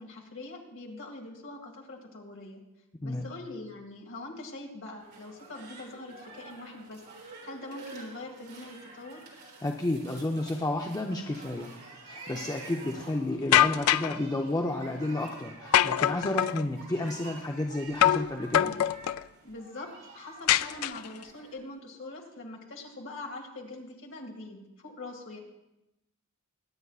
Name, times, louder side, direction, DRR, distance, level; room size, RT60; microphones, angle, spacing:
voice 1, 0.0-2.6 3.0-7.0 7.4-9.2 19.4-25.4, left 2 dB, 60° left, -1 dB, 2.1 m, -43 dB
sound 1, 5.0-21.5, right 3 dB, 85° right, 3.9 m, -49 dB
voice 2, 9.6-11.7 12.0-18.7, left 1 dB, 15° left, 1 dB, 0.5 m, -31 dB
sound 2, 13.5-14.2 15.7-16.6 18.0-18.3 18.5-19.2 20.5-21.2, left 11 dB, 75° left, 0.3 m, -23 dB
22.0 x 9.3 x 2.4 m, 0.92 s
head